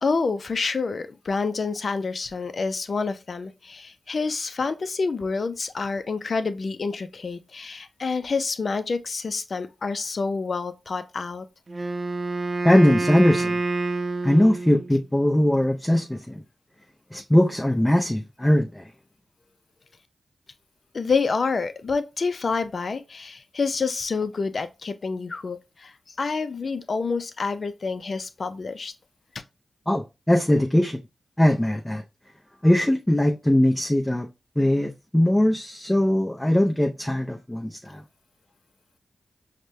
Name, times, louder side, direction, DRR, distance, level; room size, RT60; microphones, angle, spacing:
voice 1, 0.0-11.4 20.9-25.9 26.2-28.9, left 4 dB, 60° left, 0.4 m, -28 dB
Wind instrument woodwind instrument, 11.7-15.0, right 2 dB, 50° right, 0.5 m, -27 dB
voice 2, 12.6-13.6 14.2-16.4 17.1-18.8 29.9-31.0 31.4-32.0 32.6-34.3 34.6-38.0, left 1 dB, 10° left, 0.5 m, -20 dB
5.0 x 2.2 x 3.1 m
cardioid pair, 45°, 0 cm